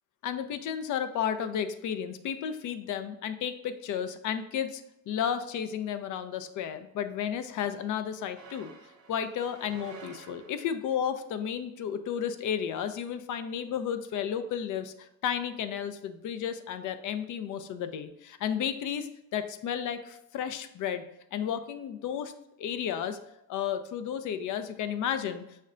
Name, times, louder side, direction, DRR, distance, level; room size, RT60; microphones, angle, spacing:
voice 1, 0.2-8.7 9.1-21.0 21.3-22.3 22.6-23.2 23.5-25.4, left 8 dB, 55° left, 10 dB, 0.5 m, -33 dB
sound 1, 8.3-11.0, right 4 dB, 40° right, 0.7 m, -50 dB
6.3 x 2.2 x 2.4 m, 0.83 s
supercardioid pair, 65°, 37 cm